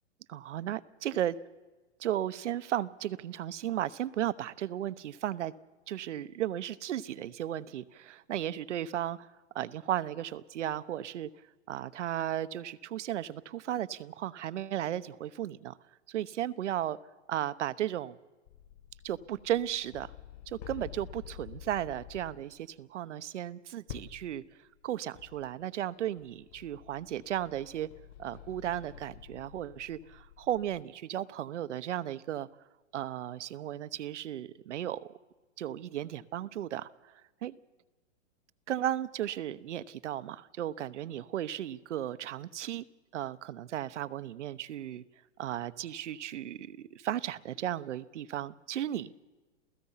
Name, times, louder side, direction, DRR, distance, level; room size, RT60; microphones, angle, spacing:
voice 1, 0.3-1.4 2.0-5.5 5.9-11.3 11.7-15.8 16.1-17.0 17.3-18.2 19.0-20.1 20.5-24.4 24.8-27.9 28.2-32.5 32.9-35.1 35.6-37.1 37.4-37.5 38.7-42.8 43.1-45.0 45.4-49.1, right 12 dB, 70° right, 16 dB, 1.0 m, -35 dB
sound 1, 18.5-22.6 23.9-24.4 24.8-24.9 25.1-25.7 26.2-30.8, left 9 dB, 35° left, 1.2 m, -49 dB
28.5 x 16.5 x 5.7 m, 1.2 s
hypercardioid pair, 165°, 37 cm